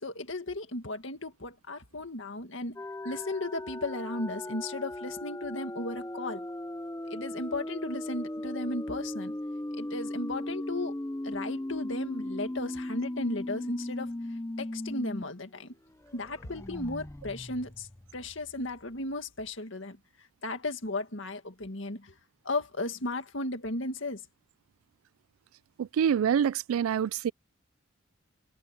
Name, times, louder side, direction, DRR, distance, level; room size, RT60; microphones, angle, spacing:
voice 1, 0.0-2.8 3.0-6.4 7.1-9.3 9.8-10.9 11.2-14.1 14.6-15.7 16.1-17.9 18.1-20.0 20.4-22.1 22.5-24.2, left 2 dB, 65° left, 2.1 m, -35 dB
sound 1, 2.8-15.2 15.6-15.7 16.0-18.7, left 1 dB, 15° left, 0.6 m, -37 dB
voice 2, 25.8-27.3, right 8 dB, 85° right, 0.3 m, -26 dB
head